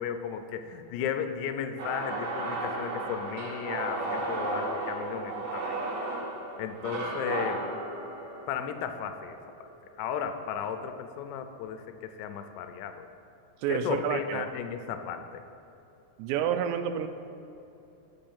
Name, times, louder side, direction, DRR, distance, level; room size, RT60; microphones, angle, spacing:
voice 1, 0.0-5.8 6.6-7.6 8.5-9.4 10.0-13.1 13.7-15.4, left 8 dB, 85° left, 7 dB, 2.7 m, -35 dB
sound 1, 1.8-10.0, right 2 dB, 70° right, 2.1 m, -34 dB
voice 2, 13.6-14.5 16.2-17.1, right 8 dB, 85° right, 9 dB, 2.8 m, -29 dB
6.3 x 5.6 x 7.0 m, 2.8 s
omnidirectional pair, 5.0 m